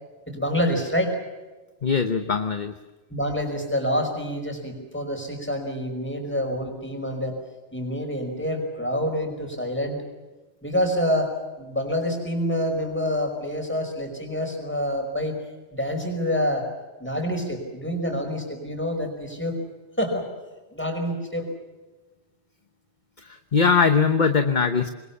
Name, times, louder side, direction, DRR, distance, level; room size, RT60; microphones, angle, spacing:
voice 1, 0.3-1.2 3.1-7.4 7.7-10.0 10.6-15.4 15.7-16.7 17.0-19.6 20.0-20.3 20.7-21.5, equal, 10° left, 4 dB, 5.4 m, -27 dB
voice 2, 1.8-2.7 23.2-24.9, left 5 dB, 45° left, 8 dB, 1.1 m, -21 dB
26.0 x 22.0 x 7.2 m, 1.2 s
omnidirectional pair, 1.2 m